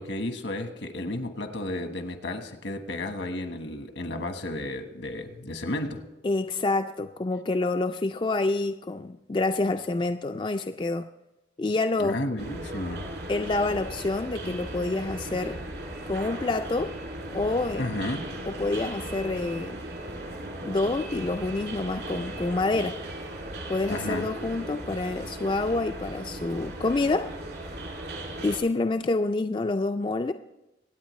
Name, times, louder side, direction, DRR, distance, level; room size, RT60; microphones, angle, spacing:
voice 1, 0.0-6.0 12.0-13.0 17.8-18.2 23.9-24.3, left 1 dB, 85° left, 6 dB, 1.3 m, -32 dB
voice 2, 6.2-11.1 11.6-12.2 13.3-15.6 16.1-17.0 17.3-17.8 18.5-19.8 20.6-23.0 23.7-27.3 28.4-30.3, left 2 dB, 25° left, 7 dB, 0.3 m, -27 dB
sound 1, 12.4-28.6, right 1 dB, 70° right, 2.6 m, -37 dB
25.0 x 8.8 x 3.2 m, 0.98 s
head